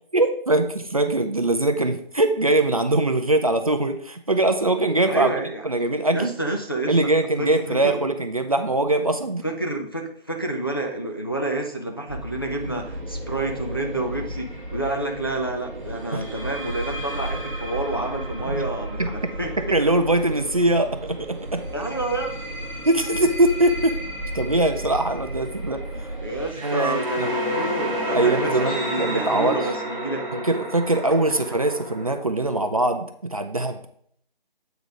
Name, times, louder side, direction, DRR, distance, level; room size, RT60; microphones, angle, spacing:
voice 1, 0.1-6.3 6.9-9.4 16.1-16.3 18.5-18.6 19.0-19.1 19.7-21.6 22.8-24.0 24.3-26.1 26.6-27.3 28.1-29.7 30.3-33.8, right 2 dB, 35° right, 7 dB, 0.5 m, -22 dB
voice 2, 5.1-5.6 6.1-7.1 7.4-8.0 9.4-19.5 21.7-22.5 26.2-30.5, right 2 dB, 25° left, 2 dB, 0.5 m, -29 dB
sound 1, 12.1-26.5, right 1 dB, 55° right, 1.2 m, -34 dB
sound 2, 14.3-14.6 16.1-20.9 21.7-32.1, equal, 10° right, 1.3 m, -32 dB
8.0 x 4.0 x 4.9 m, 0.65 s
figure-of-eight pair, 165°, 30 cm